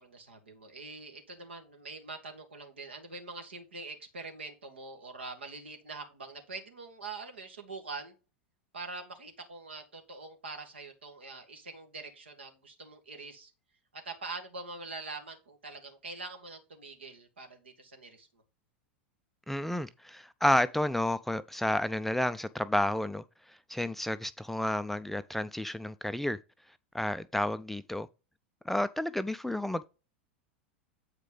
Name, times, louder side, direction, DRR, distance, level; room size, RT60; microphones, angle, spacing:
voice 1, 0.0-8.1 8.7-13.5 13.9-18.4, right 3 dB, 75° right, 2.0 m, -44 dB
voice 2, 19.5-23.2 23.5-26.4 26.9-28.1 28.7-29.9, left 1 dB, 5° left, 0.4 m, -31 dB
8.2 x 5.0 x 3.8 m
figure-of-eight pair, 90°, 6 cm